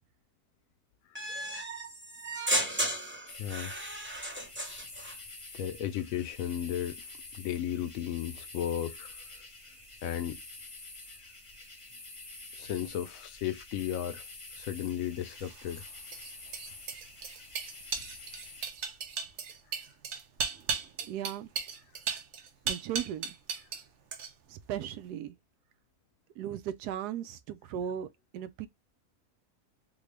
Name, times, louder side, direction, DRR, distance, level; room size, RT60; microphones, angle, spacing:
sound 1, 1.1-5.2, right 1 dB, 10° right, 0.7 m, -34 dB
sound 2, 3.3-18.7, left 3 dB, 30° left, 0.7 m, -48 dB
voice 1, 3.4-3.7 5.5-7.0 7.3-9.1 10.0-10.4 12.6-14.2 14.5-15.8, left 10 dB, 70° left, 0.9 m, -34 dB
sound 3, 15.3-23.8 24.1-24.6, right 6 dB, 60° right, 0.9 m, -36 dB
voice 2, 21.1-21.5 22.7-23.3 24.5-25.3 26.4-28.1 28.3-28.7, right 10 dB, 90° right, 1.2 m, -36 dB
3.7 x 2.3 x 3.2 m
omnidirectional pair, 1.7 m